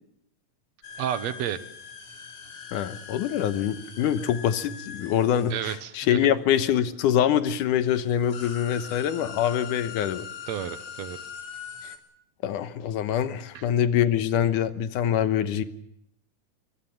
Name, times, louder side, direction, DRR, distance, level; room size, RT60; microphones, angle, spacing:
sound 1, 0.8-6.5 7.4-7.5 7.8-12.0, left 7 dB, 55° left, 4.1 m, -42 dB
voice 1, 1.0-1.6 5.5-6.2 8.7-8.9 10.5-11.2 13.5-13.6, right 10 dB, 65° right, 12 dB, 2.2 m, -31 dB
voice 2, 2.7-10.3 12.4-15.6, left 10 dB, 85° left, 12 dB, 2.7 m, -24 dB
23.5 x 21.0 x 7.4 m, 0.75 s
omnidirectional pair, 3.6 m